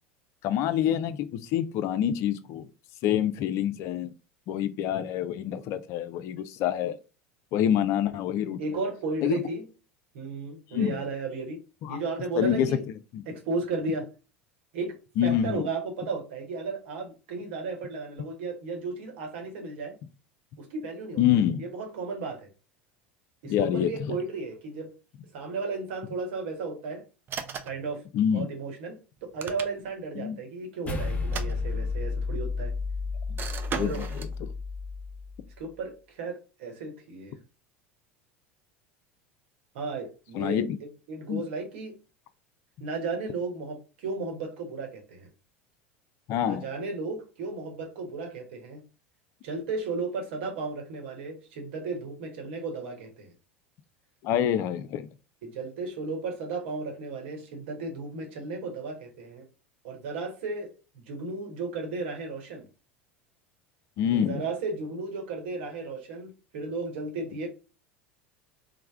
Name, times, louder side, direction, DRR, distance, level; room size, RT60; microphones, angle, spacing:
voice 1, 0.4-2.7 3.0-4.1 4.5-7.0 7.5-8.6 9.2-9.4 10.7-11.0 11.8-12.0 12.4-12.7 13.1-13.3 15.2-15.7 21.2-21.6 23.4-24.2 28.1-28.5 30.2-30.4 33.3-33.4 33.8-34.3 40.3-40.8 41.3-41.4 46.3-46.7 54.2-55.1 64.0-64.4, left 10 dB, 45° left, 0.4 m, -26 dB
voice 2, 8.6-9.7 10.1-11.6 11.9-12.8 13.3-14.1 14.7-15.0 15.2-20.0 20.6-21.2 21.6-22.5 23.4-24.9 25.3-27.0 27.6-28.0 28.3-32.7 33.7-34.0 35.6-37.4 39.7-40.6 41.1-41.9 42.8-45.3 46.4-48.8 49.4-53.3 55.4-59.5 59.8-62.6 64.1-67.5, right 3 dB, 60° right, 1.0 m, -34 dB
sound 1, 27.3-27.9 29.2-30.1 31.2-32.1 33.4-34.4, right 6 dB, 30° right, 0.4 m, -37 dB
sound 2, 30.9-35.4, left 4 dB, 20° left, 0.8 m, -32 dB
3.2 x 2.1 x 3.3 m
figure-of-eight pair, 75°, 7 cm